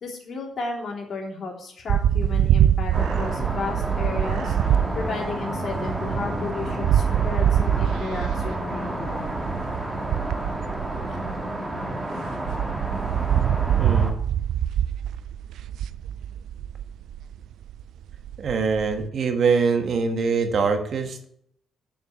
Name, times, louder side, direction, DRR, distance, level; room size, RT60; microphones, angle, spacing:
voice 1, 0.0-4.5 4.9-9.3, left 3 dB, 55° left, -1 dB, 3.2 m, -33 dB
sound 1, 1.9-11.9 12.3-19.1, right 10 dB, 75° right, 0.3 m, -24 dB
sound 2, 2.9-14.1, right 1 dB, 15° right, 2.1 m, -30 dB
voice 2, 13.8-14.2 18.4-21.2, right 5 dB, 55° right, 5 dB, 1.5 m, -23 dB
7.0 x 6.4 x 7.1 m, 0.68 s
cardioid pair, 90°, 0 cm